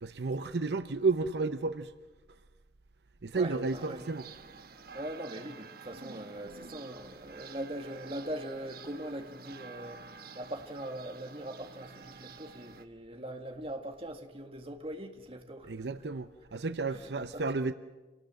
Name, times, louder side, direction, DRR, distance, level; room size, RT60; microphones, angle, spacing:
voice 1, 0.0-1.9 3.2-4.3 15.6-17.7, right 3 dB, 75° right, 0.7 m, -32 dB
voice 2, 3.3-4.1 4.9-10.0 10.4-15.7 16.9-17.4, right 1 dB, 35° right, 1.9 m, -41 dB
sound 1, 3.6-12.8, right 4 dB, 60° right, 1.2 m, -50 dB
27.5 x 18.5 x 7.7 m
head